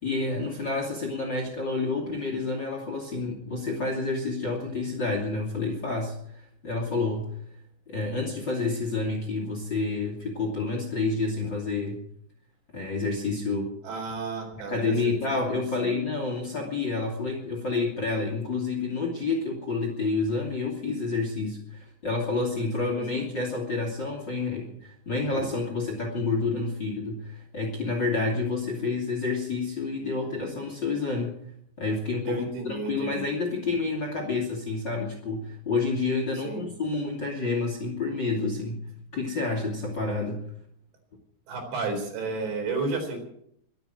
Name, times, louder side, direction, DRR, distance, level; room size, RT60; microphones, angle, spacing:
voice 1, 0.0-7.3 7.9-12.0 12.7-13.7 14.5-31.4 31.8-38.9 39.1-40.4, left 3 dB, 30° left, 2 dB, 2.5 m, -29 dB
voice 2, 13.8-14.9 15.3-15.4 15.8-16.0 22.8-23.2 32.3-33.3 36.4-36.7 41.5-43.3, right 3 dB, 75° right, 3 dB, 6.2 m, -32 dB
23.5 x 8.0 x 7.6 m, 0.71 s
omnidirectional pair, 5.1 m